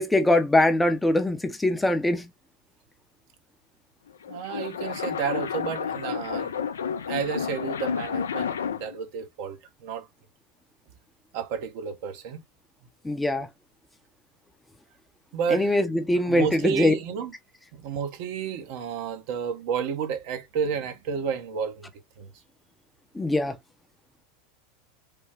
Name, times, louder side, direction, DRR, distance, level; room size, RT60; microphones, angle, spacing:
voice 1, 0.0-2.3 13.0-13.5 15.5-17.0 23.1-23.6, left 1 dB, 10° left, 0.5 m, -22 dB
sound 1, 4.1-9.0, left 7 dB, 90° left, 0.3 m, -31 dB
voice 2, 4.3-6.6 7.1-10.1 11.3-12.4 15.3-15.8 16.3-17.3 17.7-21.9 22.2-22.3, right 7 dB, 60° right, 0.7 m, -31 dB
3.3 x 2.1 x 3.1 m
hypercardioid pair, 95°, 0 cm